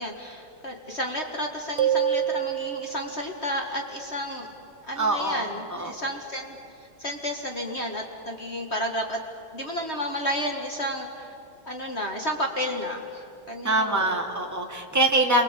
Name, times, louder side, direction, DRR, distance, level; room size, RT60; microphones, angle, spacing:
voice 1, 0.0-4.5 4.8-6.6 7.0-9.2 9.5-11.3 11.7-14.1, equal, 35° left, 2 dB, 2.0 m, -31 dB
sound 1, 1.8-3.3, right 9 dB, 80° right, 0.6 m, -26 dB
voice 2, 5.0-5.9 13.6-15.4, right 1 dB, 10° right, 0 dB, 2.4 m, -24 dB
28.5 x 23.5 x 8.3 m, 2.8 s
omnidirectional pair, 2.2 m